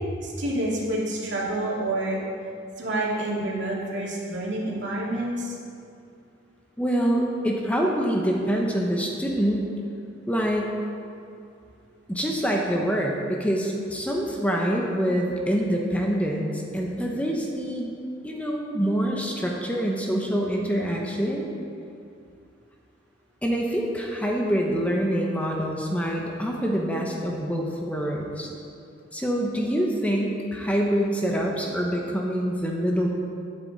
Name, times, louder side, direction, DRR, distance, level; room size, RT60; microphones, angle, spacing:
voice 1, 0.2-2.2 2.8-5.5, right 1 dB, 75° right, -4 dB, 2.5 m, -28 dB
voice 2, 6.8-9.7 10.3-10.8 12.1-17.9 18.2-21.5 23.4-28.5 29.1-33.1, equal, 10° left, -1 dB, 1.0 m, -25 dB
11.5 x 9.4 x 4.2 m, 2.4 s
head